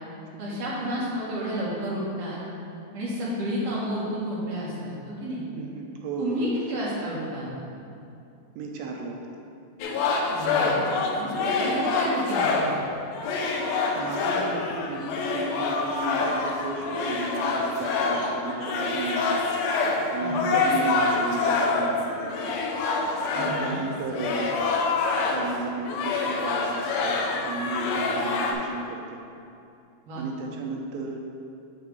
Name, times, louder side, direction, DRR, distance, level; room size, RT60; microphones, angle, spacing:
voice 1, 0.4-2.4 2.9-5.4 6.2-7.5 10.3-10.8 11.2-12.7 20.2-20.5 23.3-23.8 30.1-30.3, right 1 dB, 55° right, -7 dB, 1.8 m, -31 dB
voice 2, 5.6-6.4 8.6-9.2 14.0-19.4 19.8-22.5 23.4-24.6 25.3-29.2 30.2-31.3, right 3 dB, 80° right, 1 dB, 2.2 m, -34 dB
sound 1, 9.8-12.8 13.1-25.6 25.9-28.5, left 3 dB, 80° left, 2.3 m, -26 dB
7.2 x 3.3 x 6.2 m, 2.6 s
omnidirectional pair, 4.4 m